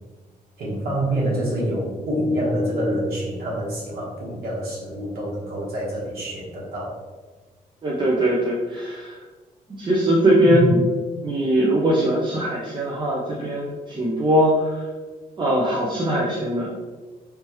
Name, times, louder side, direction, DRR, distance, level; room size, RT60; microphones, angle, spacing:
voice 1, 0.6-6.9 10.4-10.7, right 1 dB, 80° right, -5 dB, 1.3 m, -26 dB
voice 2, 7.8-9.2 9.8-10.8 11.2-14.6 15.4-16.7, right 1 dB, 30° right, -4 dB, 0.6 m, -21 dB
3.3 x 3.1 x 3.0 m, 1.3 s
cardioid pair, 125°, 16 cm